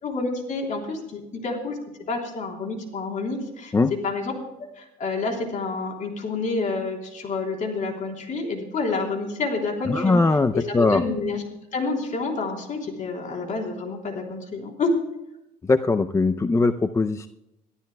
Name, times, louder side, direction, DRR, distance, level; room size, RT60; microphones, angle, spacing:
voice 1, 0.0-1.8 2.1-4.3 4.8-10.2 10.5-11.4 11.7-14.9, left 3 dB, 50° left, 2 dB, 3.6 m, -28 dB
voice 2, 9.9-11.0 15.7-17.3, left 3 dB, 15° left, 10 dB, 0.5 m, -20 dB
24.0 x 12.5 x 2.3 m, 0.91 s
cardioid pair, 110°, 17 cm